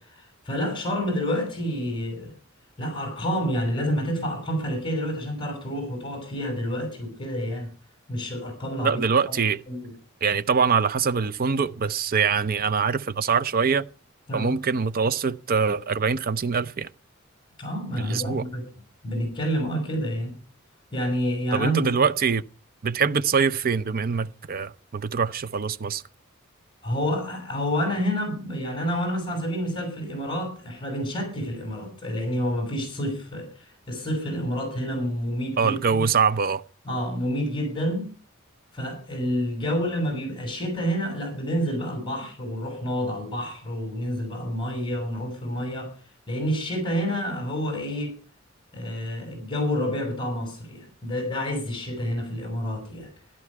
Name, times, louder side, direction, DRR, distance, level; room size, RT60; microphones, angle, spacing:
voice 1, 0.0-2.3 2.8-7.7 8.1-9.3 9.7-9.9 14.3-14.5 17.6-18.6 19.0-20.3 20.9-21.9 26.8-35.8 36.8-38.2 38.7-45.9 46.3-48.2 48.7-53.1, equal, 25° left, 5.6 m, -28 dB
voice 2, 8.8-9.6 10.2-13.9 14.3-16.9 18.0-18.4 21.5-22.4 22.8-26.0 35.6-36.6, right 5 dB, 45° right, 0.6 m, -24 dB
14.5 x 12.0 x 4.7 m
head